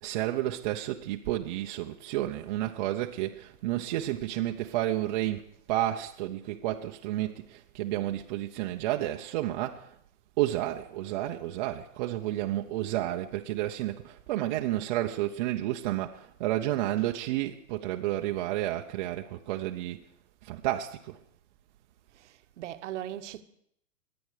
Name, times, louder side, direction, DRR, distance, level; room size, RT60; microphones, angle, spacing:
voice 1, 0.0-5.4 5.7-9.9 10.4-20.0 20.4-21.2, right 14 dB, 30° right, 0.7 m, -31 dB
voice 2, 22.1-23.4, right 12 dB, 50° right, 1.0 m, -39 dB
22.0 x 8.9 x 4.8 m
hypercardioid pair, 135°, 45 cm